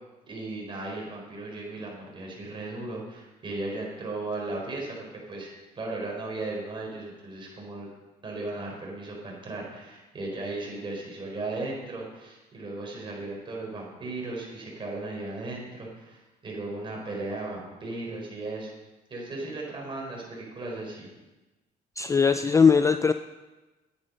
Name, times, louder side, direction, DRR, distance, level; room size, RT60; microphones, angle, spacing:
voice 1, 0.3-5.5 5.7-7.9 8.2-18.7 19.1-21.1, right 2 dB, 30° right, -2 dB, 4.6 m, -36 dB
voice 2, 22.0-23.1, left 5 dB, 20° left, 10 dB, 0.4 m, -20 dB
11.5 x 9.4 x 5.4 m, 1.1 s
cardioid pair, 110°, 17 cm